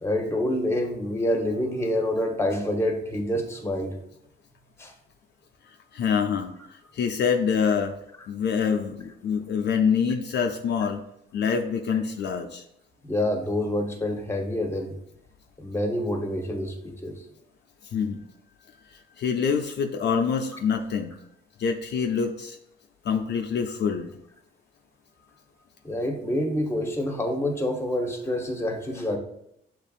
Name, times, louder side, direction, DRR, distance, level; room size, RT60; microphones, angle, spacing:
voice 1, 0.0-4.0 4.8-4.9 13.0-14.9 15.6-17.2 25.8-29.2, left 1 dB, 15° left, 3 dB, 0.9 m, -27 dB
voice 2, 5.9-6.5 6.9-7.9 8.3-11.0 11.3-12.6 17.9-18.2 19.2-21.1 21.6-22.6 23.0-24.1, left 6 dB, 60° left, 4 dB, 0.5 m, -25 dB
6.8 x 3.0 x 2.4 m, 0.76 s
cardioid pair, 90°, 20 cm